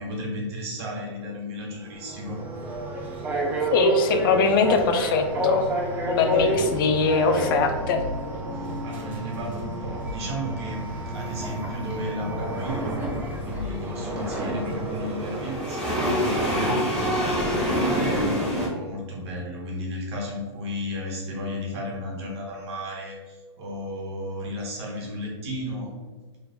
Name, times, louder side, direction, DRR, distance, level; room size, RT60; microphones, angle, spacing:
voice 1, 0.0-2.4 6.1-6.6 8.5-10.8 11.1-13.0 13.4-16.8 17.5-25.9, equal, 60° right, -1 dB, 1.2 m, -33 dB
sound 1, 1.7-15.6, right 1 dB, 10° right, 0.6 m, -29 dB
voice 2, 3.7-5.8 6.0-8.0, left 4 dB, 45° left, 6 dB, 0.4 m, -22 dB
sound 2, 6.4-13.7, equal, 45° right, 1.3 m, -38 dB
sound 3, 11.7-18.7, equal, 5° left, 0.9 m, -27 dB
3.1 x 2.4 x 3.4 m, 1.3 s
hypercardioid pair, 145°, 15 cm